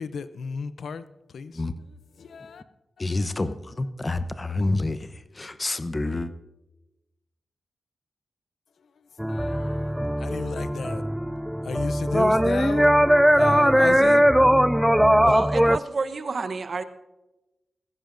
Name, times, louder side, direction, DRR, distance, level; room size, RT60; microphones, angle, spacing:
voice 1, 0.0-2.6 3.0-3.5 8.8-11.1 11.6-12.9 13.3-15.3, left 5 dB, 80° left, 0.6 m, -35 dB
voice 2, 3.0-5.1 5.3-6.3, left 2 dB, 35° left, 0.9 m, -28 dB
sound 1, 9.2-15.8, equal, 5° right, 0.3 m, -20 dB
voice 3, 15.2-16.8, right 4 dB, 60° right, 1.0 m, -29 dB
19.5 x 15.0 x 2.6 m
cardioid pair, 50°, 0 cm